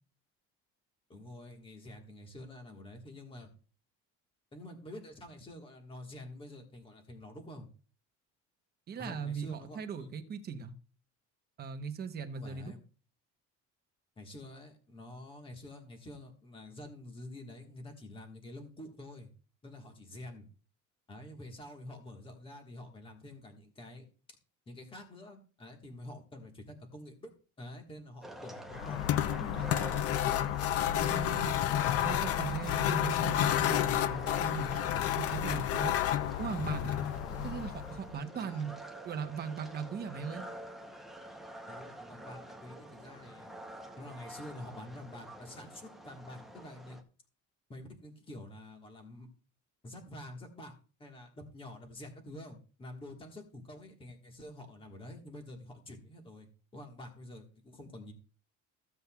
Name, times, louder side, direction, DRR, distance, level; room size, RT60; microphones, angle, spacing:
voice 1, 1.1-3.5 4.5-7.7 9.0-10.1 12.3-12.8 14.2-19.3 19.6-20.5 21.1-24.0 24.7-27.3 27.6-29.7 38.3-38.7 41.7-43.5 44.0-47.0 47.7-49.3 49.8-50.7 51.0-58.1, left 1 dB, 15° left, 4 dB, 1.5 m, -48 dB
voice 2, 8.9-10.7 11.6-12.7 30.8-31.5 32.0-35.9 36.4-37.0 37.4-38.7 39.0-40.4, right 6 dB, 30° right, 7 dB, 0.9 m, -39 dB
sound 1, 28.2-47.0, right 1 dB, ahead, 0.7 m, -47 dB
sound 2, 28.7-38.1, left 11 dB, 50° left, 0.5 m, -30 dB
15.0 x 8.1 x 2.3 m, 0.37 s
cardioid pair, 175°, 31 cm